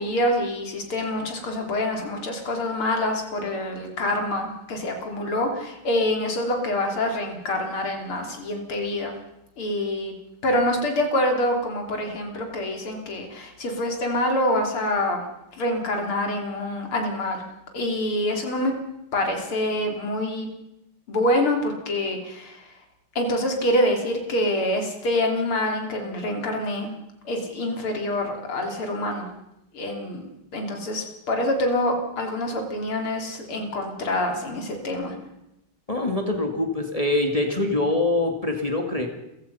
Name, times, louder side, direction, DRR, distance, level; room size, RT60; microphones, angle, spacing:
voice 1, 0.0-9.1 9.6-10.1 10.4-15.2 15.6-17.4 17.7-18.7 19.1-20.5 21.1-22.6 23.2-26.9 27.3-29.3 29.7-30.3 30.5-35.1, left 1 dB, 75° left, 3 dB, 4.1 m, -26 dB
voice 2, 35.9-39.1, left 2 dB, 15° left, 3 dB, 2.1 m, -24 dB
29.5 x 15.5 x 5.6 m, 0.86 s
omnidirectional pair, 2.4 m